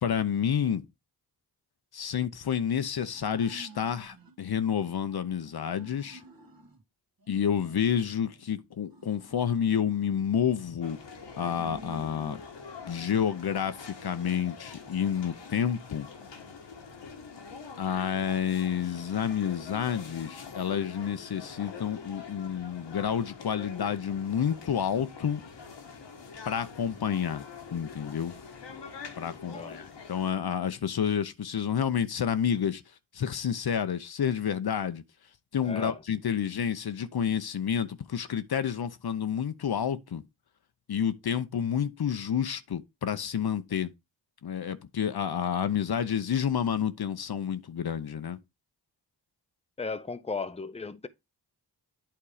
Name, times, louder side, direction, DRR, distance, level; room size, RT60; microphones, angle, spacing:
voice 1, 0.0-0.8 1.9-6.2 7.3-11.0 11.4-12.4 12.9-16.1 17.8-25.4 26.5-27.4 27.7-28.3 29.2-32.8 33.1-35.0 35.5-40.2 40.9-43.9 44.4-48.4, left 8 dB, 60° left, 0.8 m, -29 dB
sound 1, 3.1-4.3 4.7-6.8 7.2-8.4 8.9-10.8 11.3-12.5, right 2 dB, 55° right, 1.7 m, -51 dB
sound 2, 10.8-30.3, left 5 dB, 85° left, 1.5 m, -45 dB
voice 2, 29.5-29.9 35.6-36.0 49.8-51.1, left 4 dB, 15° left, 0.7 m, -36 dB
8.6 x 3.6 x 4.9 m
cardioid pair, 40°, 42 cm